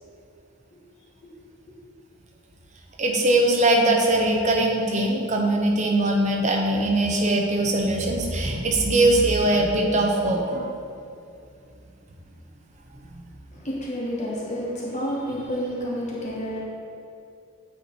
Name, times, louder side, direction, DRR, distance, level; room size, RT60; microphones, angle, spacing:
voice 1, 3.0-10.7, right 1 dB, 30° right, 0 dB, 0.6 m, -21 dB
voice 2, 13.5-16.6, equal, 30° left, -5 dB, 1.1 m, -30 dB
8.4 x 3.1 x 4.2 m, 2.5 s
head